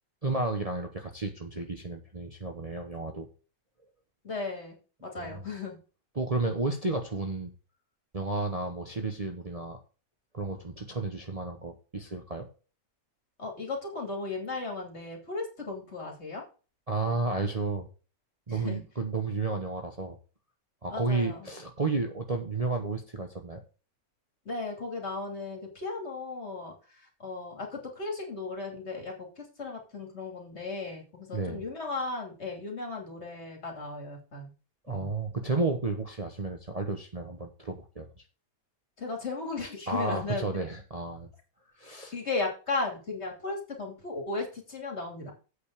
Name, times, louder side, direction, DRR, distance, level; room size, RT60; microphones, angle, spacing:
voice 1, 0.2-3.3 5.2-5.4 6.1-7.5 8.1-9.8 10.3-12.5 16.9-17.9 18.5-20.2 20.8-23.6 31.3-31.6 34.9-38.1 39.9-41.3 41.8-42.1, right 3 dB, 30° right, 3 dB, 1.0 m, -32 dB
voice 2, 4.2-5.8 13.4-16.4 18.5-18.8 20.9-21.5 24.4-34.5 34.9-35.1 39.0-40.6 42.1-45.3, left 3 dB, 45° left, 1 dB, 3.2 m, -36 dB
8.3 x 5.3 x 6.7 m, 0.35 s
omnidirectional pair, 1.5 m